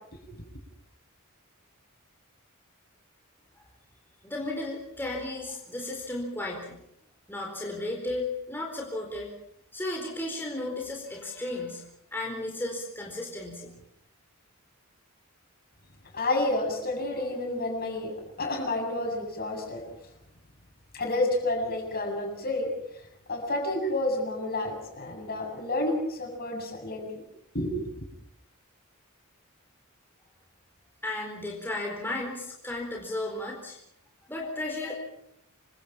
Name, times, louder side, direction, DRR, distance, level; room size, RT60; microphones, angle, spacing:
voice 1, 4.2-6.8 7.3-9.3 9.7-13.7 31.0-33.8 34.3-34.9, left 2 dB, 10° left, -1 dB, 4.4 m, -34 dB
voice 2, 16.1-19.8 20.9-22.7 23.3-27.1 27.5-27.9, left 2 dB, 45° left, 2 dB, 7.6 m, -30 dB
27.0 x 25.0 x 5.9 m, 0.75 s
head